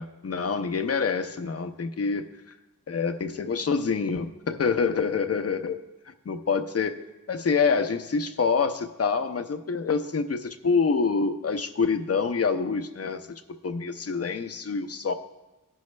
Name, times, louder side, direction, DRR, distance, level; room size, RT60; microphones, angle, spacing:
voice 1, 0.0-2.3 2.9-5.8 6.3-7.0 7.3-13.3 13.6-15.1, left 5 dB, 45° left, 8 dB, 0.6 m, -26 dB
16.0 x 5.5 x 3.2 m, 1.1 s
wide cardioid pair, 75°, 34 cm